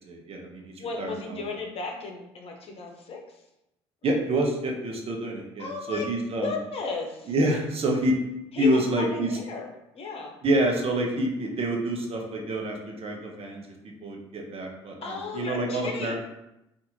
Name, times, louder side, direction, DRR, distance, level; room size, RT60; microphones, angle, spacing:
voice 1, 0.1-1.4 4.0-6.5 7.3-8.2 8.6-9.3 10.4-13.6 14.0-16.2, right 1 dB, 45° right, 1 dB, 0.9 m, -27 dB
voice 2, 0.8-3.4 5.6-6.1 6.4-7.3 8.5-10.4 15.0-16.2, left 4 dB, 45° left, 1 dB, 0.9 m, -34 dB
4.0 x 2.6 x 2.7 m, 0.88 s
hypercardioid pair, 55°, 14 cm